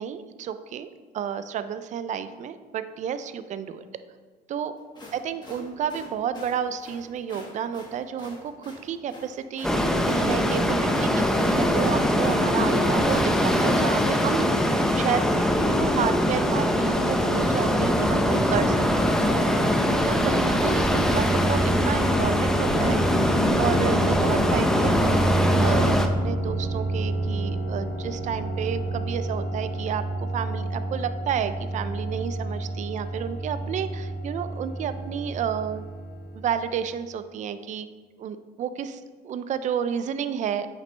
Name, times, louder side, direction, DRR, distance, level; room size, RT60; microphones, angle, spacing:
voice 1, 0.0-3.9 4.5-4.7 5.1-14.5 15.0-19.2 20.0-23.0 23.6-25.2 25.6-35.8 36.3-37.9 38.2-40.7, right 8 dB, 45° right, 11 dB, 0.4 m, -31 dB
sound 1, 4.8-13.8, left 2 dB, 25° left, 1.6 m, -45 dB
sound 2, 9.6-26.1, equal, 5° left, 0.6 m, -22 dB
sound 3, 20.1-36.5, right 2 dB, 80° left, 2.2 m, -30 dB
8.3 x 5.9 x 3.3 m, 1.4 s
cardioid pair, 110°, 17 cm